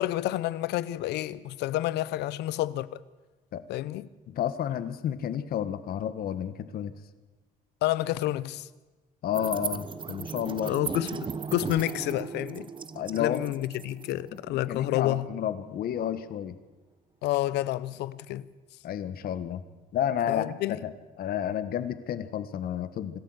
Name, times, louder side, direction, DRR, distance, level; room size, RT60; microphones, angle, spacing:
voice 1, 0.0-3.0 3.7-4.1 7.8-8.7 10.6-12.7 13.1-15.3 17.2-18.5 20.3-20.8, left 15 dB, 85° left, 0.8 m, -29 dB
voice 2, 4.3-6.9 9.2-10.7 12.9-13.5 14.3-16.5 18.8-19.6 19.9-20.6 20.8-20.9 21.2-23.2, left 10 dB, 60° left, 1.6 m, -31 dB
sound 1, 9.3-15.9, right 5 dB, 30° right, 1.1 m, -37 dB
25.5 x 13.5 x 8.0 m
cardioid pair, 110°, 17 cm